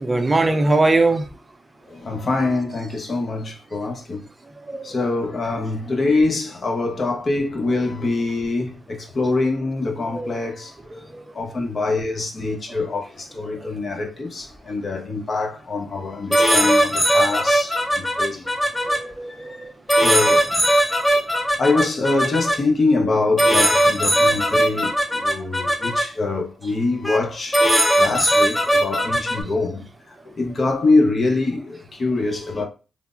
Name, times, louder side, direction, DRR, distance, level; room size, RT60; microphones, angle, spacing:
voice 1, 0.0-1.2 4.7-4.9 10.1-10.4 10.9-11.2 18.8-19.5, right 2 dB, 25° right, 0.5 m, -21 dB
voice 2, 1.9-4.2 4.8-10.7 11.3-18.5 18.9-19.1 19.4-19.6 19.9-20.5 21.1-21.2 21.6-27.6 28.0-29.8 30.3-32.6, left 3 dB, 55° left, 0.8 m, -24 dB
sound 1, 16.3-19.0 19.9-22.6 23.4-26.0 27.0-27.2 27.5-29.4, right 1 dB, 15° left, 0.7 m, -19 dB
3.2 x 2.0 x 2.4 m
supercardioid pair, 45°, 0 cm